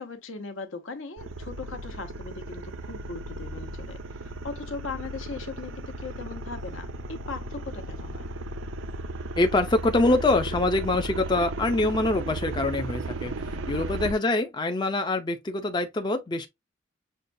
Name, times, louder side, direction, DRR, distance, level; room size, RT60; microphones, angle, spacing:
voice 1, 0.0-8.2, left 4 dB, 80° left, 1.0 m, -39 dB
sound 1, 1.2-14.1, right 2 dB, 70° right, 0.4 m, -35 dB
voice 2, 9.4-16.5, left 2 dB, 20° left, 0.4 m, -25 dB
6.5 x 2.2 x 2.6 m
head